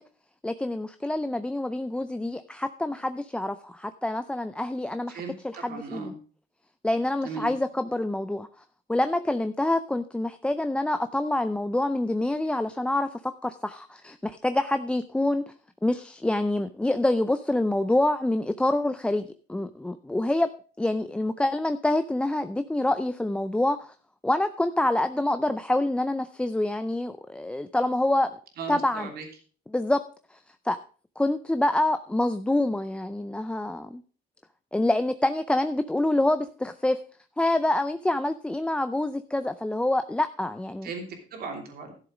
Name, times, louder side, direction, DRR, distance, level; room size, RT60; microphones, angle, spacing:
voice 1, 0.4-6.1 6.8-8.5 8.9-15.4 15.8-19.2 19.5-20.5 20.8-23.9 24.2-28.3 28.7-29.1 29.7-30.0 30.6-30.8 31.2-34.0 34.7-37.0 37.4-40.9, left 1 dB, 5° left, 10 dB, 0.4 m, -26 dB
voice 2, 5.1-6.2 7.2-7.5 28.6-29.3 40.8-41.9, right 4 dB, 65° right, 3 dB, 3.1 m, -37 dB
12.5 x 7.1 x 5.0 m, 0.40 s
cardioid pair, 110°, 17 cm